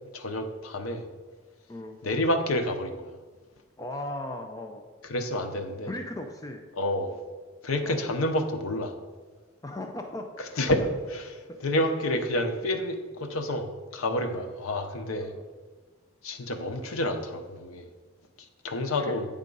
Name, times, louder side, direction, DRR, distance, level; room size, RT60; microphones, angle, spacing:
voice 1, 0.1-1.0 2.0-3.1 5.1-5.9 6.8-7.2 7.6-8.9 10.6-10.8 11.1-11.2 11.6-15.3 16.2-17.9 18.6-19.3, left 1 dB, 85° left, 6 dB, 0.8 m, -29 dB
voice 2, 3.8-4.9 5.9-6.6 7.8-8.1 9.6-10.5 11.5-11.6 14.3-14.5 15.2-15.4 19.0-19.2, left 1 dB, 15° left, 4 dB, 0.4 m, -37 dB
8.7 x 3.6 x 5.3 m, 1.3 s
head